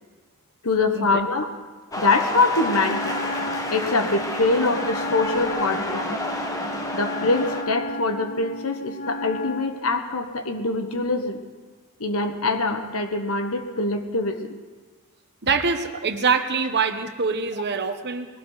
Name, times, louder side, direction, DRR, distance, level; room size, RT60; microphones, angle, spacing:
voice 1, 0.6-1.5 2.0-3.2 3.7-6.1 6.9-11.4 12.0-14.6, left 3 dB, 75° left, 7 dB, 1.4 m, -24 dB
sound 1, 1.9-7.6, left 1 dB, 15° left, 1.5 m, -30 dB
Wind instrument woodwind instrument, 2.6-9.8, left 1 dB, 45° left, 0.5 m, -33 dB
voice 2, 15.4-18.3, right 5 dB, 55° right, 8 dB, 1.1 m, -24 dB
21.5 x 16.5 x 4.0 m, 1.4 s
head